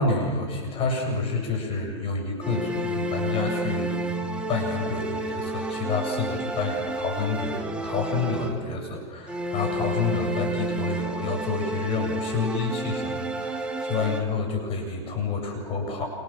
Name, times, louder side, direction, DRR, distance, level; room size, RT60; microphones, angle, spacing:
voice 1, 0.0-3.9 4.2-16.1, left 4 dB, 35° left, 3 dB, 7.6 m, -29 dB
sound 1, 2.4-8.9 9.3-14.2, right 2 dB, 5° right, 3.0 m, -31 dB
28.5 x 27.5 x 7.5 m, 1.5 s
hypercardioid pair, 115°, 15 cm